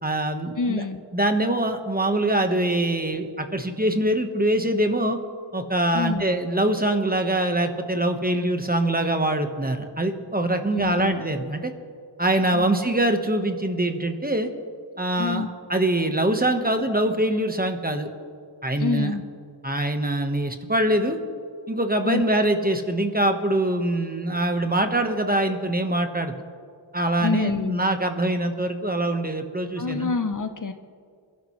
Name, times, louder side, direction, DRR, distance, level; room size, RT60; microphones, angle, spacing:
voice 1, 0.0-0.8 1.1-5.2 5.5-11.7 12.2-14.5 15.0-18.1 18.6-19.1 19.6-21.2 21.7-26.4 26.9-30.1, right 1 dB, 20° right, 6 dB, 1.2 m, -24 dB
voice 2, 0.6-1.0 5.9-6.3 10.7-11.2 12.5-12.7 15.2-15.5 18.8-19.2 22.0-22.2 27.2-27.8 29.8-30.7, left 4 dB, 45° left, 8 dB, 0.7 m, -26 dB
27.5 x 12.5 x 3.1 m, 2.2 s
wide cardioid pair, 90°, 46 cm